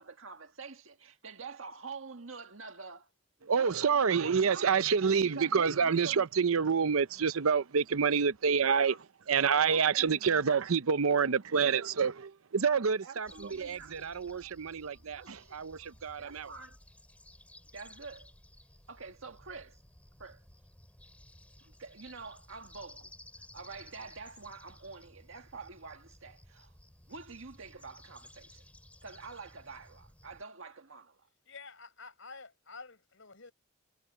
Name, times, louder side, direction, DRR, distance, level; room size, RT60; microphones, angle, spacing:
voice 1, 0.0-3.1 3.4-3.8 4.2-4.7 5.2-6.2 8.9-9.0 9.5-10.6 11.8-12.0 13.0-14.0 15.1-15.5 16.2-16.8 17.7-18.3 18.9-19.8 20.2-20.4 21.6-23.1 23.5-26.7 27.1-28.6 29.0-31.3, right 4 dB, 70° right, 1.7 m, -47 dB
voice 2, 3.4-16.5, right 6 dB, 85° right, 0.7 m, -28 dB
sound 1, 13.3-30.4, left 1 dB, 5° left, 3.1 m, -56 dB
voice 3, 31.4-33.5, left 4 dB, 65° left, 4.8 m, -49 dB
head